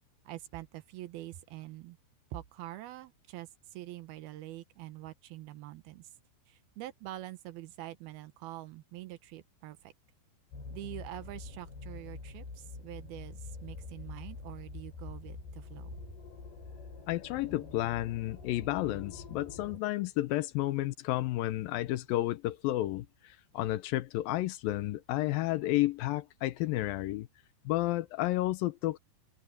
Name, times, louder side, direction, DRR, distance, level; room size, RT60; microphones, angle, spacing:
voice 1, 0.3-2.0 2.3-6.1 6.5-9.9 10.7-16.2, right 15 dB, 75° right, 2.6 m, -45 dB
sound 1, 10.5-19.8, left 3 dB, 60° left, 9.3 m, -46 dB
voice 2, 17.1-27.3 27.7-29.0, left 16 dB, 90° left, 2.1 m, -31 dB
omnidirectional pair, 5.1 m